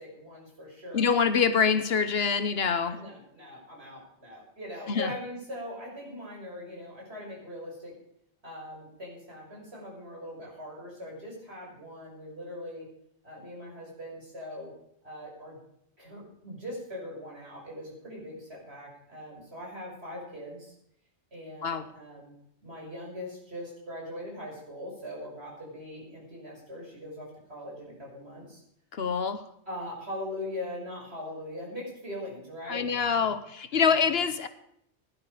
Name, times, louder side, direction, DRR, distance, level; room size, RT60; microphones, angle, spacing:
voice 1, 0.0-1.1 2.8-7.9 8.4-12.8 13.2-14.7 15.0-15.6 16.0-20.7 21.3-22.3 22.6-28.6 29.6-33.4 33.7-34.0, left 1 dB, 65° right, -3 dB, 6.3 m, -41 dB
voice 2, 0.9-3.0 4.9-5.1 21.6-21.8 29.0-29.4 32.7-34.5, left 6 dB, 65° left, 11 dB, 1.1 m, -25 dB
17.5 x 11.0 x 5.0 m, 0.73 s
omnidirectional pair, 1.2 m